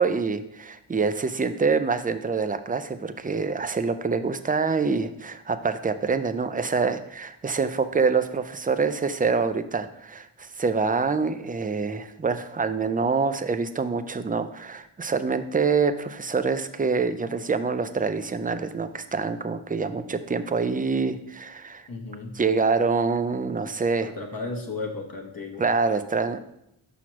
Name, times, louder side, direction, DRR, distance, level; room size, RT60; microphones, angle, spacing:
voice 1, 0.0-21.9 22.4-24.1 25.6-26.5, right 4 dB, 20° right, 11 dB, 0.3 m, -26 dB
voice 2, 21.9-22.4 24.0-25.7, left 3 dB, 45° left, 0 dB, 0.9 m, -34 dB
6.0 x 5.8 x 3.0 m, 0.79 s
wide cardioid pair, 45°, 49 cm